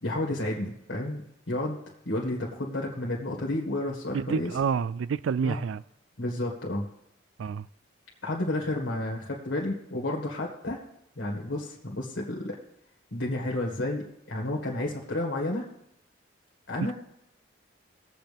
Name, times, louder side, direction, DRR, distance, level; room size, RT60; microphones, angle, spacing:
voice 1, 0.0-1.8 2.1-4.6 5.4-5.6 6.2-6.9 8.2-10.8 11.2-12.6 13.1-15.7 16.7-16.9, left 1 dB, 65° left, 1.8 m, -31 dB
voice 2, 4.1-5.8 7.4-7.7, right 6 dB, 75° right, 0.3 m, -28 dB
20.0 x 7.8 x 3.5 m
head